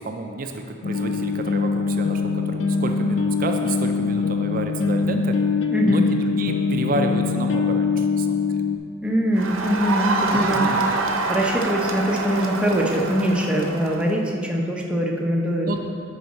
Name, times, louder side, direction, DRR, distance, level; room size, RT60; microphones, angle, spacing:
voice 1, 0.0-5.4 5.8-8.7 10.3-10.8 15.6-15.8, right 2 dB, 45° right, 5 dB, 0.4 m, -29 dB
sound 1, 0.8-8.8, left 5 dB, 60° left, 0.4 m, -23 dB
voice 2, 5.7-6.0 9.0-10.6 11.3-15.8, equal, 5° right, -1 dB, 0.7 m, -22 dB
Crowd, 9.3-14.2, right 3 dB, 90° right, 0.7 m, -26 dB
10.5 x 4.8 x 4.2 m, 2.4 s
head